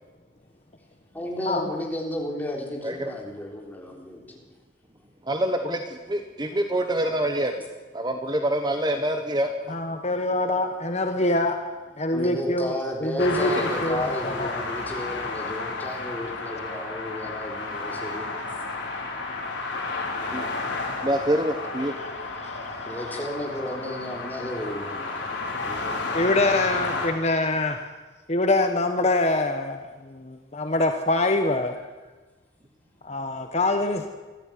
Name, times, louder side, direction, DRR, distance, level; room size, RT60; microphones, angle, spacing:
voice 1, 1.1-4.4 12.1-18.5 22.9-25.3 25.6-26.1, left 1 dB, 10° left, -1 dB, 4.1 m, -33 dB
voice 2, 5.3-7.6 7.9-9.6 20.3-20.5 21.0-21.9, right 1 dB, 20° right, 6 dB, 1.3 m, -26 dB
voice 3, 9.7-11.6 12.0-12.7 13.0-14.5 22.4-22.6 26.1-27.8 28.3-31.7 33.0-34.1, left 2 dB, 35° left, 6 dB, 1.3 m, -24 dB
sound 1, 13.2-27.1, left 3 dB, 70° left, 5.9 m, -32 dB
24.5 x 14.0 x 9.5 m, 1.3 s
head